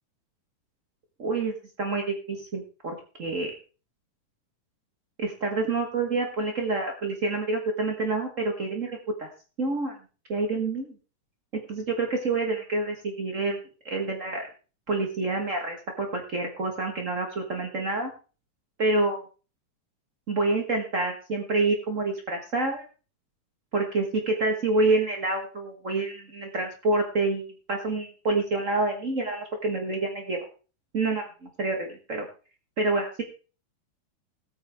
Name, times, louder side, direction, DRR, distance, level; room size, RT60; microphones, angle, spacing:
voice 1, 1.2-3.5 5.2-9.3 9.6-10.0 10.3-10.9 11.5-13.6 13.8-14.5 14.9-18.1 18.8-19.2 20.3-22.8 23.7-30.4 30.9-31.2 31.6-32.3 32.8-33.2, right 3 dB, 85° right, 3 dB, 0.6 m, -27 dB
19.0 x 8.8 x 3.5 m, 0.36 s
omnidirectional pair, 4.1 m